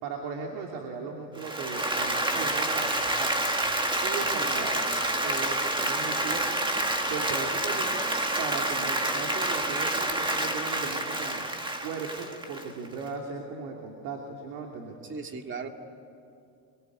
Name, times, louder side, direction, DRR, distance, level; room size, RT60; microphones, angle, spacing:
voice 1, 0.0-3.3 4.0-4.8 5.2-6.5 7.0-8.0 8.4-11.4 11.8-15.0, right 5 dB, 90° right, 2 dB, 3.0 m, -37 dB
Applause, 1.4-13.1, right 1 dB, 10° right, 1.6 m, -28 dB
voice 2, 4.2-4.6 15.1-15.7, right 5 dB, 25° right, 5 dB, 2.1 m, -38 dB
24.0 x 23.5 x 9.8 m, 2.4 s
cardioid pair, 135°, 43 cm